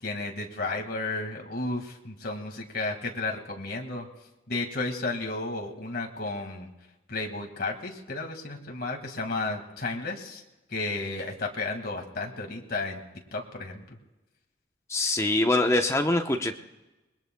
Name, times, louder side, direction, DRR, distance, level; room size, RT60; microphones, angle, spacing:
voice 1, 0.0-4.1 4.5-6.7 7.1-10.4 10.7-13.0 13.3-13.8, left 3 dB, 55° left, 2 dB, 2.0 m, -33 dB
voice 2, 14.9-16.5, left 2 dB, 15° left, 5 dB, 0.8 m, -24 dB
26.0 x 21.0 x 2.3 m, 1.0 s
head